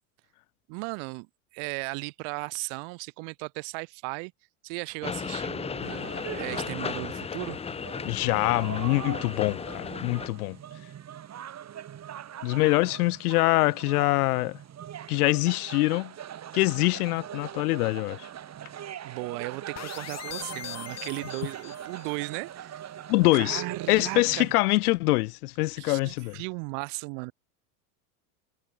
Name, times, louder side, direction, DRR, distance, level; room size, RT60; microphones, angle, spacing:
voice 1, 0.7-1.3 1.5-4.3 4.6-7.6 19.0-22.8 23.3-24.5 25.8-27.3, right 40 dB or more, 60° right, 1.0 m, -36 dB
sound 1, 5.0-10.3, left 6 dB, 15° left, 0.6 m, -35 dB
sound 2, 5.8-24.5, right 10 dB, 35° right, 3.5 m, -42 dB
voice 2, 8.0-10.6 12.4-14.6 15.1-16.1 16.5-18.3 23.1-26.4, left 21 dB, 80° left, 0.7 m, -24 dB
sound 3, 19.8-22.2, left 10 dB, 35° left, 3.4 m, -41 dB
hypercardioid pair, 95°, 45 cm